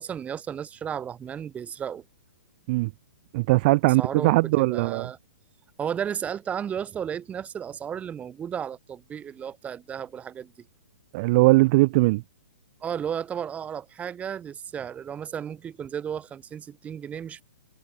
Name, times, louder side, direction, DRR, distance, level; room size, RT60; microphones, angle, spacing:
voice 1, 0.0-2.0 4.0-5.2 5.8-10.5 12.8-17.4, right 8 dB, 15° right, 7.3 m, -33 dB
voice 2, 3.3-5.1 11.1-12.2, right 22 dB, 35° right, 0.4 m, -20 dB
figure-of-eight pair, 120°, 8 cm